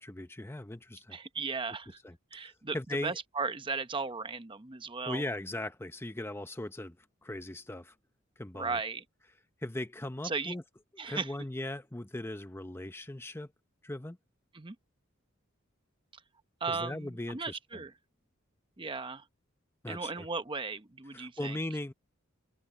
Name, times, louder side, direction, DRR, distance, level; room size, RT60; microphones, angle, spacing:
voice 1, 0.0-1.2 2.0-2.1 2.4-3.2 5.1-7.0 7.2-7.9 8.4-8.8 9.6-10.6 10.9-13.5 13.8-14.2 16.7-17.8 19.8-20.3 21.1-21.9, left 1 dB, 10° left, 0.7 m, -38 dB
voice 2, 1.1-2.0 2.3-2.8 3.0-5.2 8.5-9.0 10.2-10.5 11.0-11.3 14.5-14.8 16.6-17.9 18.8-19.2 19.9-21.6, right 4 dB, 25° right, 0.8 m, -36 dB
open air
head